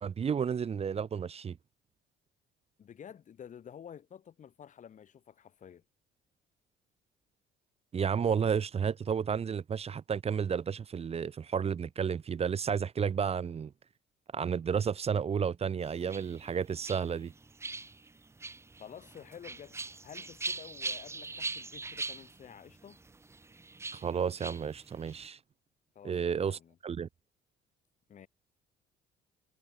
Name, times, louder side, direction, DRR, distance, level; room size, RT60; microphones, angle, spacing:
voice 1, 0.0-1.6 7.9-13.7 14.3-17.3 23.9-25.4 26.0-27.1, right 7 dB, 35° right, 1.7 m, -32 dB
voice 2, 2.8-5.8 18.8-23.0 25.9-26.8 28.1-28.3, left 8 dB, 45° left, 7.3 m, -51 dB
sound 1, 15.8-25.3, right 3 dB, 15° right, 1.0 m, -42 dB
cardioid pair, 110°, 17 cm